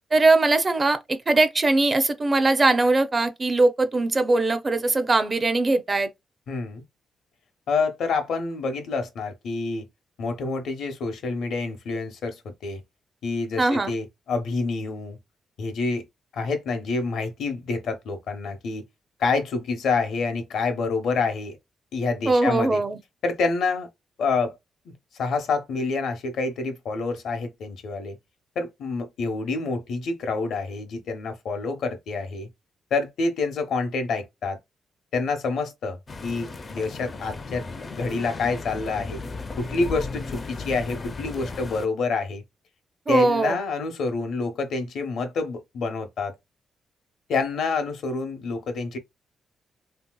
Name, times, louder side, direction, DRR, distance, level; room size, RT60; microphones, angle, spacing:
voice 1, 0.1-6.1 13.6-14.0 22.3-23.0 43.1-43.6, right 2 dB, 30° right, 0.5 m, -21 dB
voice 2, 6.5-6.8 7.7-9.9 10.2-12.8 13.2-15.2 15.6-16.0 16.3-18.8 19.2-21.6 21.9-22.8 23.2-23.9 24.2-24.6 24.8-28.2 28.6-32.5 32.9-34.6 35.1-39.2 39.6-42.4 43.1-46.3 47.3-49.0, left 4 dB, 75° left, 0.8 m, -27 dB
Street City Traffic Busy London Close Perpective, 36.1-41.9, left 3 dB, 35° left, 0.4 m, -35 dB
3.2 x 2.7 x 2.2 m
cardioid pair, 95°, 0 cm